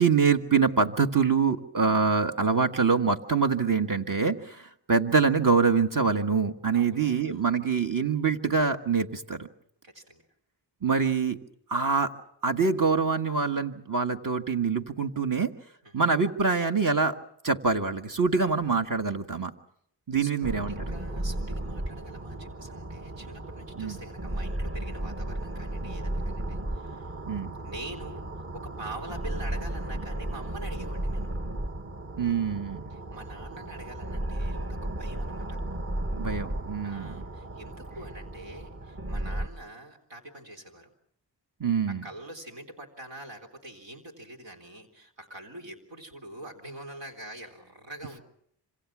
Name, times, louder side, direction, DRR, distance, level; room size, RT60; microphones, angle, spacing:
voice 1, 0.0-9.5 10.8-11.4 11.7-12.1 12.4-15.5 15.9-17.1 17.4-19.5 20.1-20.7 23.8-24.0 27.3-27.6 32.2-32.8 36.1-37.2 41.6-42.0, right 5 dB, 45° right, 5 dB, 1.5 m, -25 dB
voice 2, 6.7-7.4 9.8-10.2 15.8-16.1 20.2-27.2 27.6-31.3 32.9-35.6 36.8-40.9 41.9-48.2, right 1 dB, 85° right, 1 dB, 3.7 m, -45 dB
sound 1, 20.4-39.5, right 1 dB, 30° right, 1.2 m, -35 dB
26.5 x 26.0 x 6.1 m, 0.70 s
cardioid pair, 65°, 43 cm